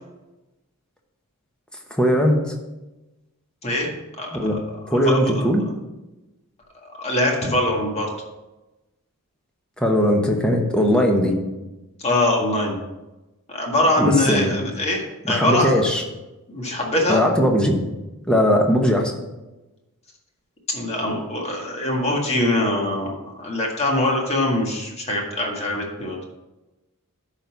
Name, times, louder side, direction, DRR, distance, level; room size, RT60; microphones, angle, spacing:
voice 1, 2.0-2.4 4.3-4.6 4.9-5.6 9.8-11.3 14.0-14.6 15.3-16.0 17.1-17.8 18.3-19.1, equal, 5° left, 1 dB, 1.1 m, -19 dB
voice 2, 4.9-5.5 6.8-8.1 12.0-12.8 13.5-15.8 16.5-17.2 20.7-23.1 23.4-26.2, left 1 dB, 30° left, 0 dB, 1.8 m, -23 dB
11.5 x 4.1 x 5.8 m, 1.0 s
head